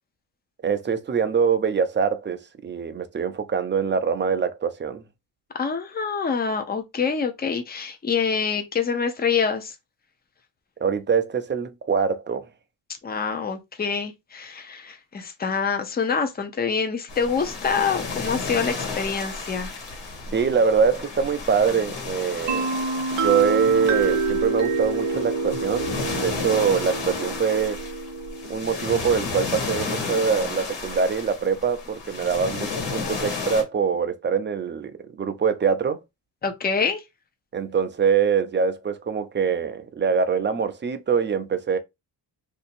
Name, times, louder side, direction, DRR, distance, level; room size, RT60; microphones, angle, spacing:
voice 1, 0.6-5.0 10.8-12.5 20.3-22.7 23.2-27.8 28.5-36.0 37.5-41.8, right 6 dB, 25° right, 0.5 m, -24 dB
voice 2, 5.5-9.7 13.0-19.7 36.4-37.0, left 5 dB, 20° left, 0.6 m, -26 dB
sound 1, 17.1-33.6, left 4 dB, 75° left, 1.4 m, -33 dB
sound 2, 22.5-30.1, right 3 dB, 85° right, 0.8 m, -28 dB
2.8 x 2.7 x 4.2 m
cardioid pair, 135°, 43 cm